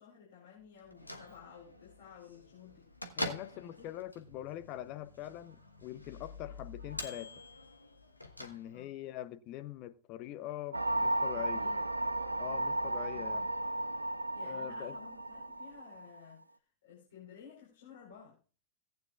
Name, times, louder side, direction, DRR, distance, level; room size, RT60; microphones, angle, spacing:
voice 1, 0.0-2.9 3.6-3.9 8.7-8.9 11.5-11.8 13.1-13.5 14.3-16.4 16.8-18.4, left 8 dB, 60° left, 4.3 m, -55 dB
Bell / Microwave oven, 0.8-9.1, left 1 dB, 85° left, 1.2 m, -45 dB
voice 2, 3.2-7.3 8.4-11.7 12.4-13.5 14.4-15.0, left 13 dB, 40° left, 0.9 m, -43 dB
sound 1, 10.7-16.2, right 1 dB, 80° right, 0.5 m, -34 dB
17.5 x 9.3 x 2.4 m
figure-of-eight pair, 90°, 0 cm